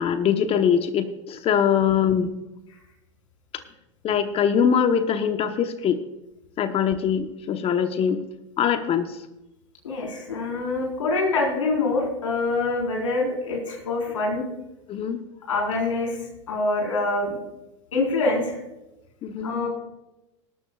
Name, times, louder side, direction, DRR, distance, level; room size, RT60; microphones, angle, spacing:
voice 1, 0.0-2.4 4.0-6.0 6.6-8.2 8.6-9.2 14.9-15.2 19.2-19.5, left 8 dB, 35° left, 9 dB, 1.0 m, -22 dB
voice 2, 9.8-14.4 15.5-16.2 16.5-17.4 17.9-18.6 19.4-19.7, left 3 dB, 85° left, -1 dB, 4.4 m, -25 dB
18.0 x 13.0 x 2.4 m, 0.96 s
hypercardioid pair, 95°, 16 cm